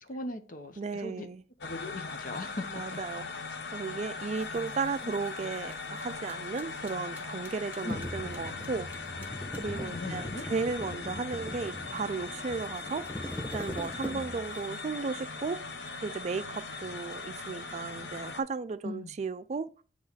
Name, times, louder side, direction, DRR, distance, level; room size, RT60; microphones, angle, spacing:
voice 1, 0.0-1.3 1.6-3.0 3.7-3.8 4.6-4.8 5.0-5.2 7.8-8.0 9.1-10.5 14.1-14.3 18.8-19.1, left 2 dB, 50° left, 0.8 m, -40 dB
voice 2, 0.8-1.4 2.7-3.3 3.7-8.9 9.6-13.0 13.5-15.6 16.0-19.7, right 4 dB, 40° right, 0.4 m, -35 dB
sound 1, 1.6-18.4, left 4 dB, 80° left, 0.8 m, -40 dB
sound 2, 4.3-10.2 10.5-15.0, right 2 dB, 10° right, 1.0 m, -61 dB
sound 3, 7.9-14.6, left 1 dB, 10° left, 0.5 m, -41 dB
8.5 x 3.1 x 4.0 m
head